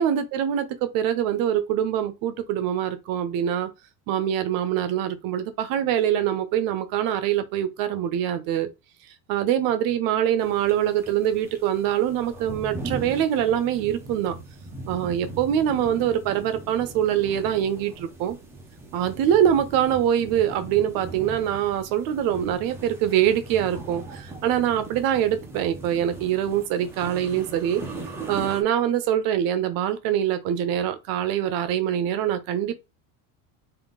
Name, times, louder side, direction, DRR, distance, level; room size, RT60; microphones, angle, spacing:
voice 1, 0.0-3.7 4.1-8.7 9.3-14.4 14.9-18.4 18.9-27.8 28.3-32.8, right 10 dB, 50° right, 0.6 m, -24 dB
sound 1, 10.4-28.6, right 3 dB, 5° right, 0.4 m, -40 dB
3.5 x 2.6 x 3.6 m
cardioid pair, 170°, 43 cm